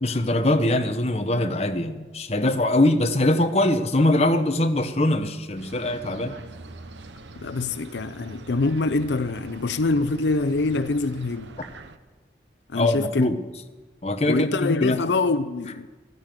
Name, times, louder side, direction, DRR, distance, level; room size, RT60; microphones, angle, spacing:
voice 1, 0.0-6.3 12.7-13.4 14.0-15.0, left 1 dB, 35° left, 0.9 m, -22 dB
sound 1, 5.6-12.0, right 2 dB, 90° right, 1.0 m, -43 dB
voice 2, 7.4-11.5 12.7-13.3 14.3-15.9, left 3 dB, 80° left, 0.6 m, -25 dB
14.5 x 12.0 x 7.6 m
head